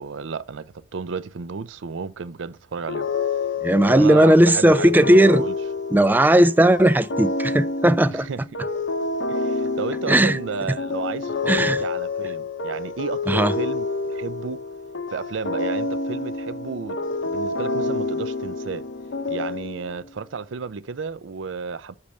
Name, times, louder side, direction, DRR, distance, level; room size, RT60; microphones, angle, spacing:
voice 1, 0.0-3.1 3.9-5.6 8.1-8.6 9.3-14.6 15.1-17.0 17.2-18.9 19.3-21.9, right 5 dB, 80° right, 0.5 m, -32 dB
sound 1, 2.9-20.1, left 3 dB, 80° left, 1.0 m, -28 dB
voice 2, 3.6-5.4 5.9-8.3 10.1-10.4 11.5-11.8 13.3-13.5, right 1 dB, 10° right, 0.4 m, -16 dB
8.2 x 3.4 x 6.5 m
head